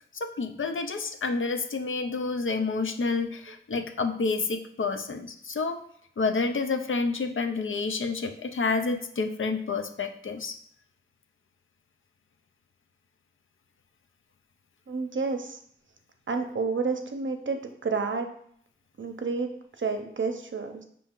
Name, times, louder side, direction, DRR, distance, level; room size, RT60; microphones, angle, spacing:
voice 1, 0.1-5.8 6.2-10.6, left 4 dB, 75° left, 7 dB, 0.5 m, -29 dB
voice 2, 14.9-15.6 16.3-18.3 19.0-19.5 19.8-20.8, right 4 dB, 70° right, 5 dB, 0.6 m, -30 dB
5.3 x 2.7 x 3.6 m, 0.64 s
wide cardioid pair, 55°, 21 cm